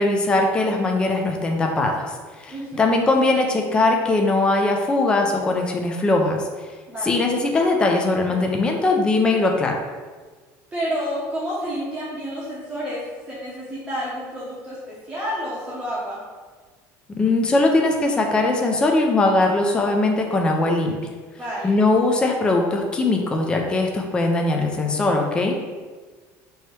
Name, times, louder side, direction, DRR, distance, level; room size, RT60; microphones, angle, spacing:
voice 1, 0.0-6.4 7.0-9.7 17.1-21.0 21.6-25.6, left 2 dB, 15° left, 2 dB, 0.4 m, -20 dB
voice 2, 2.5-2.9 6.9-7.1 10.7-16.2 21.4-21.7, equal, 15° right, -8 dB, 0.7 m, -30 dB
3.1 x 2.8 x 4.6 m, 1.4 s
cardioid pair, 165°, 7 cm